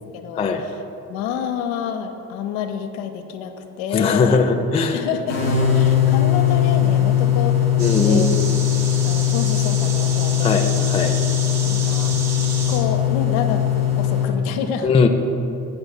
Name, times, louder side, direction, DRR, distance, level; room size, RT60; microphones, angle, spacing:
voice 1, 0.1-0.8 1.1-4.4 4.9-8.3 9.0-10.7 11.6-12.2 12.7-14.9, left 7 dB, 60° left, 6 dB, 0.8 m, -28 dB
voice 2, 3.9-5.0 7.8-8.6 10.4-11.2 14.8-15.1, left 4 dB, 15° left, 5 dB, 0.4 m, -19 dB
sound 1, 5.3-14.3, left 10 dB, 85° left, 1.7 m, -19 dB
sound 2, 7.8-12.8, right 4 dB, 75° right, 1.3 m, -31 dB
15.0 x 8.8 x 2.2 m, 2.8 s
figure-of-eight pair, 50°, 48 cm